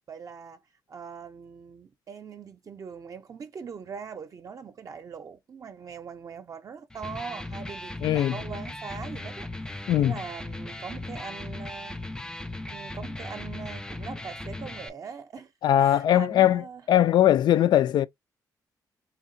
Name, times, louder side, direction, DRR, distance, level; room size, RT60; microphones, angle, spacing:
voice 1, 0.1-0.6 0.9-12.0 12.7-15.5 15.8-16.8, right 6 dB, 50° right, 0.6 m, -41 dB
Electric guitar, 6.9-14.9, left 2 dB, 10° left, 0.5 m, -37 dB
voice 2, 8.0-8.4 9.9-10.1 15.6-18.1, left 11 dB, 75° left, 0.4 m, -21 dB
3.7 x 3.5 x 2.6 m
cardioid pair, 90°, 7 cm